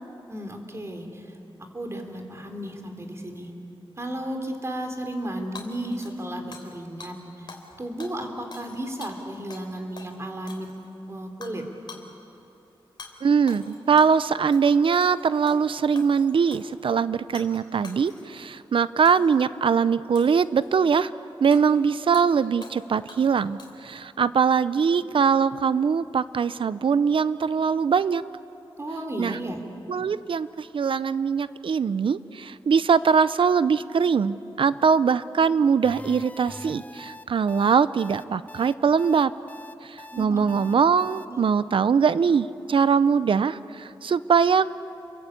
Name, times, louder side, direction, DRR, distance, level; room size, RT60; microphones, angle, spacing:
voice 1, 0.3-3.5 4.0-7.5 7.8-10.7 11.1-11.7 28.8-29.6 40.1-40.5 41.3-41.4, right 1 dB, 30° right, 4 dB, 3.5 m, -34 dB
Hammer / Shatter, 5.6-6.8 7.0-7.1 7.5-7.7 8.0-9.7 10.0-10.1 10.5-10.9 11.4-11.6 11.9-12.1 13.0-13.1 13.5-14.2 14.5-14.8 15.0-15.6 16.0-16.8 17.3-17.6 17.8-18.4 19.1-19.4 20.2-20.7 21.5-21.6 22.1-22.3 22.6-22.8 23.1-23.9, left 4 dB, 55° left, 3.6 m, -45 dB
voice 2, 13.2-21.1 21.4-28.2 29.2-29.4 29.9-39.3 39.8-44.7, right 6 dB, 65° right, 15 dB, 0.6 m, -22 dB
sound 1, 35.8-41.3, left 2 dB, 15° left, 0.7 m, -43 dB
29.5 x 22.5 x 8.5 m, 3.0 s
wide cardioid pair, 105°, 9 cm